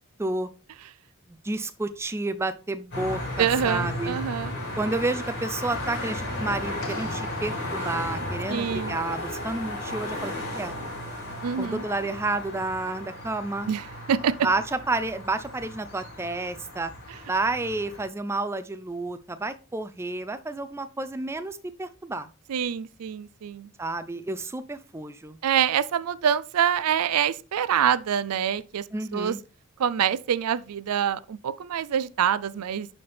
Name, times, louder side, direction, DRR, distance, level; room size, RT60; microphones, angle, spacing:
voice 1, 1.4-4.1 4.8-10.8 11.6-13.7 14.4-16.9 17.3-22.3 23.8-25.4 28.9-29.4, right 2 dB, 10° right, 0.3 m, -30 dB
sound 1, 2.9-18.0, left 1 dB, 50° left, 4.2 m, -35 dB
voice 2, 3.4-4.5 8.5-9.0 11.4-11.8 13.7-14.3 22.5-23.7 25.4-28.8 29.1-29.4 29.8-32.9, right 8 dB, 85° right, 0.4 m, -25 dB
sound 2, 6.8-8.7, left 2 dB, 65° left, 1.9 m, -43 dB
11.0 x 4.2 x 3.4 m
head